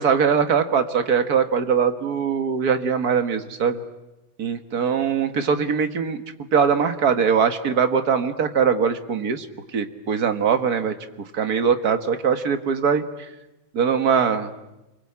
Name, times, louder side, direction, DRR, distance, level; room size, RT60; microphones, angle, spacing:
voice 1, 0.0-3.8 4.4-6.2 6.5-9.5 9.7-10.9 11.3-13.0 13.7-14.5, right 6 dB, 50° right, 8 dB, 2.0 m, -21 dB
29.5 x 22.5 x 8.8 m, 0.98 s
omnidirectional pair, 2.1 m